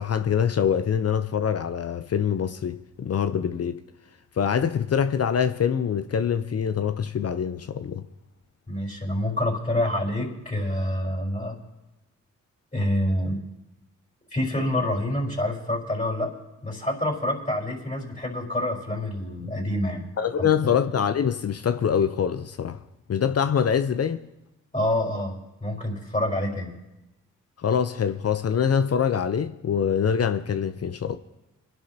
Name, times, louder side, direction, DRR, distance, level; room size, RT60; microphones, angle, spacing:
voice 1, 0.0-3.8 4.4-8.0 20.2-22.8 23.1-24.2 27.6-31.2, left 7 dB, 50° left, 0.7 m, -24 dB
voice 2, 8.7-11.6 12.7-13.4 14.3-16.3 16.6-20.1 20.4-20.5 24.7-25.3 25.6-26.7, left 1 dB, 25° left, 4.4 m, -27 dB
26.5 x 11.0 x 2.8 m
supercardioid pair, 50°, 32 cm